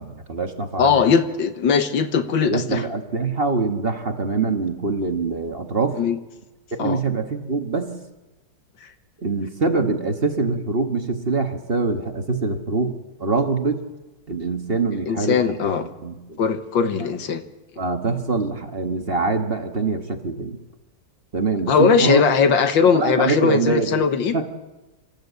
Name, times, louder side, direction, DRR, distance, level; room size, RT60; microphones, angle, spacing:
voice 1, 0.0-1.1 2.4-6.0 6.7-8.0 9.2-12.9 13.2-13.8 14.3-16.4 17.8-20.6 21.3-22.2 22.9-24.0 24.3-24.5, right 3 dB, 35° right, 5 dB, 1.5 m, -24 dB
voice 2, 0.8-2.8 6.0-6.2 6.8-7.0 8.8-8.9 14.9-15.8 16.4-17.4 21.7-24.4, left 6 dB, 85° left, 9 dB, 2.0 m, -19 dB
26.0 x 14.5 x 8.2 m, 1.1 s
omnidirectional pair, 2.0 m